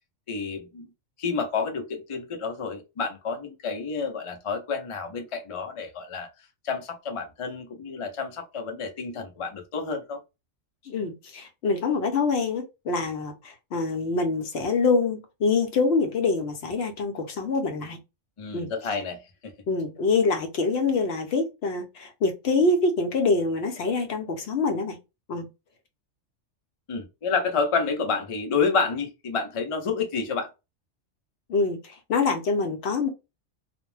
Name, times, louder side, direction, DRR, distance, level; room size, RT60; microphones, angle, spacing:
voice 1, 0.3-0.9 1.2-6.3 6.6-10.2 18.4-19.5 26.9-30.5, left 5 dB, 40° left, 0.4 m, -29 dB
voice 2, 10.9-18.0 18.5-18.7 19.7-25.0 25.3-25.5 31.5-33.1, left 3 dB, 65° left, 0.8 m, -25 dB
2.4 x 2.1 x 3.1 m
omnidirectional pair, 1.2 m